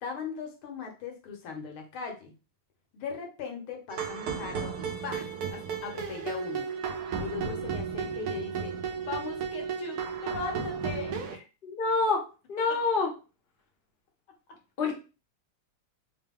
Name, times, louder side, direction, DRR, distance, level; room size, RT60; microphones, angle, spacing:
voice 1, 0.0-2.3 2.9-6.7 7.2-8.7 9.1-11.2 12.7-12.8, left 5 dB, 80° left, 2 dB, 1.7 m, -39 dB
sound 1, 3.9-11.4, right 6 dB, 80° right, 0.8 m, -34 dB
voice 2, 11.6-12.2 12.5-13.1 14.8-14.9, left 4 dB, 50° left, 0 dB, 0.6 m, -26 dB
3.7 x 2.2 x 3.5 m, 0.32 s
omnidirectional pair, 2.3 m